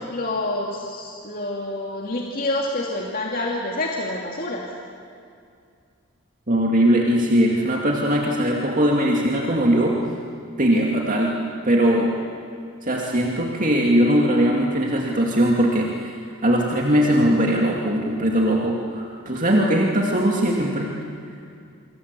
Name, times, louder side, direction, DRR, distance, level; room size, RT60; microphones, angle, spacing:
voice 1, 0.1-4.6, left 2 dB, 45° left, -1 dB, 2.5 m, -27 dB
voice 2, 6.5-10.0 10.6-11.4 11.7-12.1 12.8-16.2 16.4-20.9, equal, 40° right, -1 dB, 2.4 m, -20 dB
28.5 x 25.5 x 8.3 m, 2.4 s
head